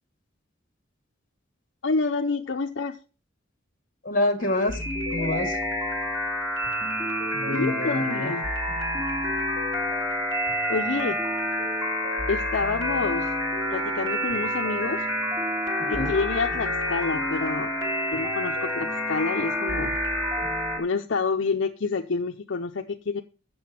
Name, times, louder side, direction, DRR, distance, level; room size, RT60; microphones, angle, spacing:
voice 1, 1.8-3.0 7.4-8.4 10.7-11.2 12.3-13.3 13.7-15.1 15.9-17.7 18.1-20.0 20.8-23.2, left 4 dB, 65° left, 0.6 m, -28 dB
voice 2, 4.0-4.8 5.1-5.6 7.3-8.3 15.8-16.1, left 2 dB, 45° left, 1.5 m, -26 dB
sound 1, 4.4-20.8, equal, 15° right, 2.4 m, -28 dB
7.9 x 6.9 x 5.7 m
head